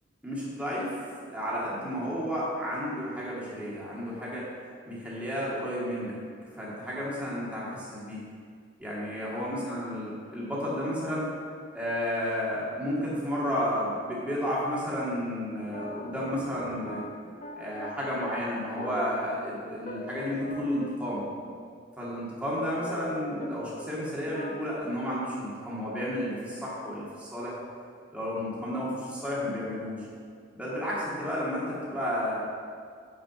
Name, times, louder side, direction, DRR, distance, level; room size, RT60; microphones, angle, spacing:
voice 1, 0.2-0.9 1.3-4.5 4.9-6.1 6.6-8.2 8.8-11.3 11.7-17.0 17.6-21.2 22.0-27.5 28.1-30.0 30.5-32.4, equal, 5° right, -7 dB, 2.0 m, -32 dB
sound 1, 15.6-20.9 21.4-21.6 22.1-23.5 23.8-23.9 24.2-24.8, left 1 dB, 40° left, 0.9 m, -41 dB
8.9 x 5.0 x 5.8 m, 2.1 s
head